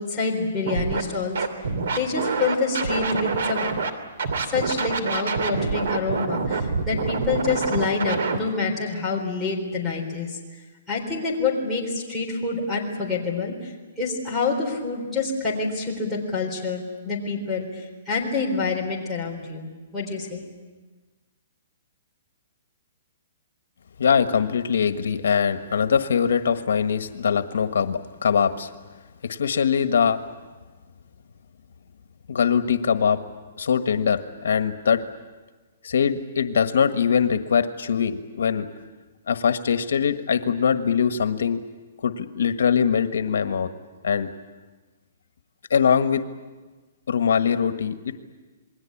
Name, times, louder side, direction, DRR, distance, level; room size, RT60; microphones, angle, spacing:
voice 1, 0.0-1.4 1.9-3.7 4.5-10.4 10.9-13.7 14.0-19.7 19.9-20.4, left 4 dB, ahead, -2 dB, 4.1 m, -27 dB
Scratching (performance technique), 0.6-1.0 1.3-3.9 4.2-8.4, right 4 dB, 65° right, 2.8 m, -26 dB
voice 2, 24.0-28.7 29.2-30.2 32.3-33.2 33.6-35.0 35.8-38.7 39.3-41.6 42.0-43.7 44.0-44.3 45.7-46.2 47.1-48.1, left 7 dB, 85° left, 9 dB, 1.5 m, -22 dB
28.0 x 21.5 x 8.6 m, 1.3 s
hypercardioid pair, 180°, 0 cm